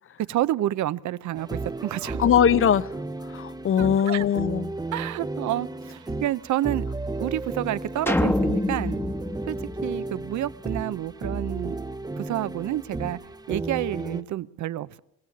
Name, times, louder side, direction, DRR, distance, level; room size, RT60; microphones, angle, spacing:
voice 1, 0.3-2.2 3.8-4.3 4.9-6.9 7.2-9.0 9.5-9.6 9.8-11.8 12.2-13.2 13.5-15.0, right 14 dB, 70° right, 0.8 m, -29 dB
sound 1, 1.4-14.2, right 2 dB, 15° right, 0.8 m, -34 dB
voice 2, 2.2-2.9 3.2-4.7, left 8 dB, 45° left, 0.7 m, -21 dB
sound 2, 8.1-10.5, left 1 dB, 10° left, 1.1 m, -26 dB
22.5 x 17.0 x 8.5 m
cardioid pair, 90°, 30 cm